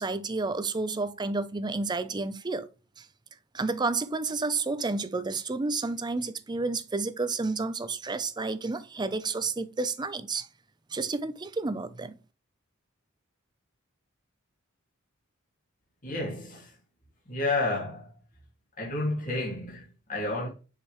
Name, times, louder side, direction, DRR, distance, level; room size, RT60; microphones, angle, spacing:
voice 1, 0.0-2.7 3.0-3.1 3.5-10.5 10.9-12.2, right 3 dB, 20° right, 0.5 m, -30 dB
voice 2, 16.0-16.7 17.3-18.1 18.8-20.5, left 2 dB, 40° left, 2.4 m, -31 dB
7.2 x 5.0 x 3.1 m
head